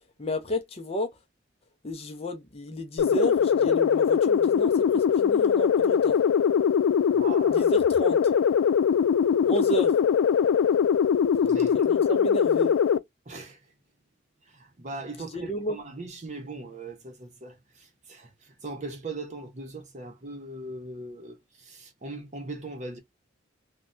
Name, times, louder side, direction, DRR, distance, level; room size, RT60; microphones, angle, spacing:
voice 1, 0.2-1.1 1.8-6.2 7.5-8.3 9.4-9.9 11.9-12.7 15.3-15.7, equal, 30° left, 0.5 m, -31 dB
sound 1, 3.0-13.0, left 7 dB, 80° left, 0.3 m, -22 dB
voice 2, 7.1-7.7 11.4-11.9 13.3-13.7 14.4-23.0, right 2 dB, 35° right, 0.8 m, -40 dB
3.2 x 2.2 x 2.5 m
head